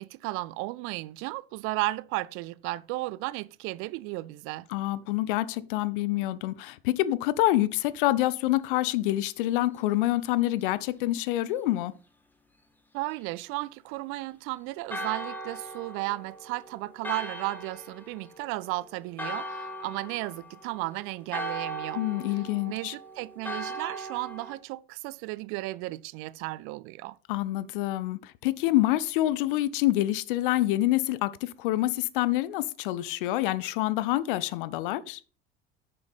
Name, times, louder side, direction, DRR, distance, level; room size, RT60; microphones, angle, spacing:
voice 1, 0.0-4.7 12.9-22.0 22.7-27.2, right 20 dB, 45° right, 0.4 m, -34 dB
voice 2, 4.7-11.9 22.0-22.9 27.3-35.2, left 15 dB, 60° left, 0.6 m, -27 dB
Church bell, 14.9-24.6, right 1 dB, 5° left, 1.5 m, -39 dB
9.5 x 6.8 x 4.0 m
figure-of-eight pair, 65°, 31 cm